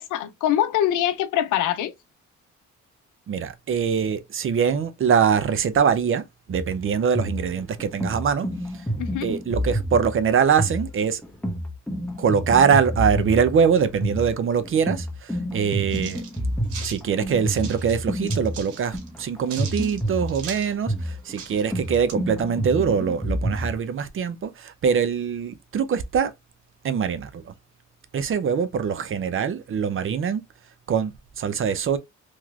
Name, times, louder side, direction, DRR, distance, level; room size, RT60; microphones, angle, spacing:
voice 1, 0.0-1.9 9.0-9.3, left 11 dB, 85° left, 0.6 m, -23 dB
voice 2, 3.3-8.5 9.2-11.2 12.2-16.2 16.8-26.3 26.8-27.5 28.1-30.4 30.9-32.0, right 7 dB, 45° right, 0.6 m, -23 dB
sound 1, 6.5-23.7, equal, 5° left, 0.9 m, -29 dB
sound 2, 15.9-17.0 17.6-18.0 18.3-19.2 19.5-20.7 21.1-21.2 21.3-22.1, right 6 dB, 85° right, 1.0 m, -39 dB
3.1 x 2.9 x 2.4 m
cardioid pair, 90°, 30 cm